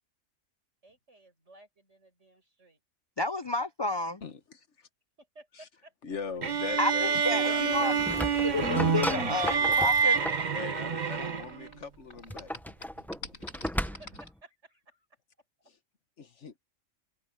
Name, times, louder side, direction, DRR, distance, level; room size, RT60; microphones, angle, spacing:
voice 1, 0.8-2.8 5.2-6.2 13.9-15.1, right 2 dB, 60° right, 7.5 m, -56 dB
voice 2, 3.2-4.2 6.8-8.0 8.5-10.2, left 2 dB, 45° left, 0.3 m, -31 dB
voice 3, 4.2-4.6 5.6-5.7 6.0-9.1 9.6-9.8 10.5-12.5 16.2-16.5, left 5 dB, 60° left, 1.4 m, -41 dB
sound 1, 6.4-11.7, right 6 dB, 40° right, 0.9 m, -27 dB
sound 2, 7.5-11.8 12.1-14.3, left 1 dB, 80° left, 7.9 m, -41 dB
sound 3, 7.7-10.5 12.1-14.3, equal, ahead, 0.6 m, -35 dB
omnidirectional pair, 1.4 m